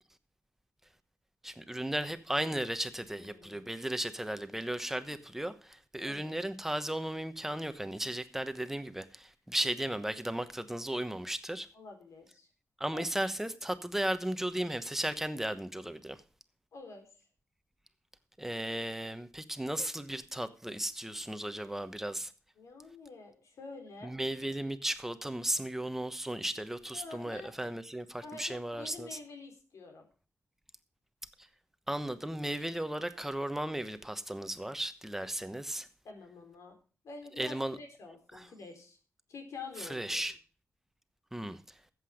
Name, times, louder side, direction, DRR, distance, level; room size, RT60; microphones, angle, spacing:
voice 1, 1.4-11.7 12.8-16.2 18.4-22.3 24.0-29.2 31.9-35.9 37.4-37.8 38.3-38.5 39.8-40.3 41.3-41.6, right 1 dB, 5° right, 1.0 m, -35 dB
voice 2, 3.2-3.7 6.0-6.5 11.7-12.5 12.9-13.1 16.7-17.1 22.6-24.1 26.9-27.5 28.2-30.1 35.2-35.3 36.0-36.8 37.0-39.0 39.3-40.2, left 4 dB, 85° left, 4.0 m, -48 dB
14.5 x 8.0 x 5.0 m
wide cardioid pair, 105°, 5 cm